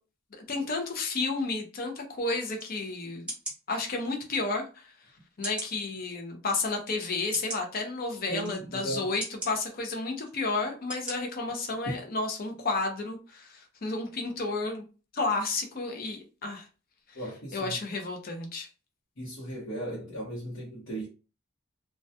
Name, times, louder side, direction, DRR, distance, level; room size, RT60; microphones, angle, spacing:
voice 1, 0.3-3.3 3.7-4.9 5.4-14.8 15.1-16.7 17.5-18.7, left 3 dB, 45° left, 0.5 m, -32 dB
sound 1, 2.6-2.7 3.3-3.6 4.3-4.4 5.4-5.7 6.4-6.5 7.3-7.6 8.4-8.5 9.2-9.5 10.2-10.4 10.9-11.1 11.6-11.7, right 1 dB, 5° right, 0.9 m, -37 dB
voice 2, 8.3-9.1 11.9-12.0 17.1-17.8 19.2-21.1, right 1 dB, 65° left, 0.9 m, -36 dB
2.2 x 2.2 x 2.7 m
head